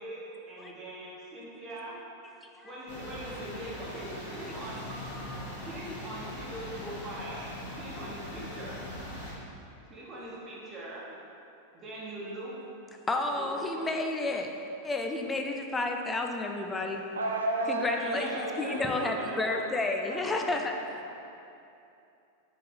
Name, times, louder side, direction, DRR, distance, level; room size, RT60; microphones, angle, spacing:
voice 1, 0.0-1.9 2.6-4.9 5.6-7.4 7.7-8.8 9.9-11.0 11.7-12.5 13.3-13.8 18.0-19.6, right 1 dB, 25° right, -6 dB, 1.1 m, -41 dB
sound 1, 2.9-9.3, left 1 dB, 50° left, 1.3 m, -41 dB
voice 2, 5.2-5.5 13.1-14.5 14.8-17.0 17.7-20.8, left 2 dB, 15° left, 3 dB, 0.4 m, -31 dB
voice 3, 16.9-19.2 19.8-21.1, right 1 dB, 75° right, 0 dB, 0.5 m, -34 dB
4.2 x 3.1 x 3.8 m, 2.6 s
figure-of-eight pair, 90°, 0 cm